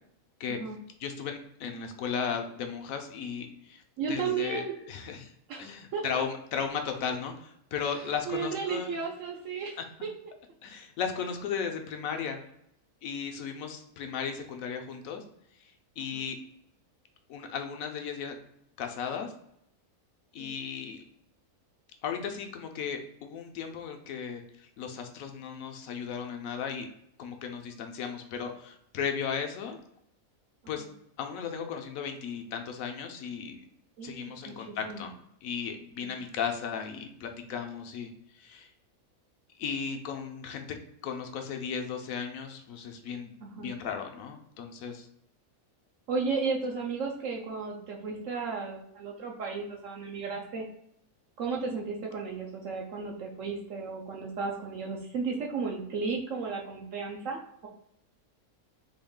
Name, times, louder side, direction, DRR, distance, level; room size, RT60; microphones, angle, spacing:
voice 1, 1.0-3.8 4.1-5.3 5.6-9.0 10.6-12.4 13.0-15.2 15.6-16.4 17.3-18.3 18.8-19.3 20.3-21.0 22.0-26.9 27.2-29.8 30.7-30.9 31.2-33.6 34.0-35.1 35.4-38.7 39.6-40.8 41.0-45.1, left 6 dB, 70° left, 5 dB, 1.0 m, -36 dB
voice 2, 4.0-4.7 5.5-6.0 7.8-10.1 16.1-16.2 20.4-20.6 34.0-35.0 36.0-36.2 43.4-43.7 46.1-50.7 51.4-57.7, right 5 dB, 70° right, 0 dB, 0.9 m, -34 dB
3.9 x 2.3 x 3.5 m, 0.74 s
omnidirectional pair, 1.6 m